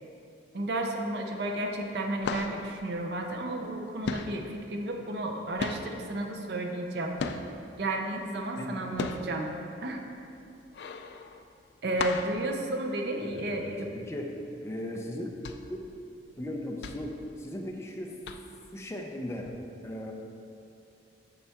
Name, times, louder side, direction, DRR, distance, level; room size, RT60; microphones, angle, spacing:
voice 1, 0.5-7.2 7.8-9.5 9.8-10.0 11.8-13.9, right 1 dB, 65° right, 3 dB, 0.6 m, -32 dB
sound 1, 1.3-1.6 1.8-7.8 8.2-13.5 13.9-14.0 14.3-14.6 15.1-17.9 18.2-18.7 19.4-19.5, left 4 dB, 65° left, 0.3 m, -37 dB
voice 2, 13.2-14.3 14.6-15.3 15.7-15.8 16.4-18.2 18.7-19.5 19.8-20.1, left 1 dB, 15° left, 0 dB, 0.5 m, -37 dB
6.9 x 5.6 x 3.5 m, 2.6 s
head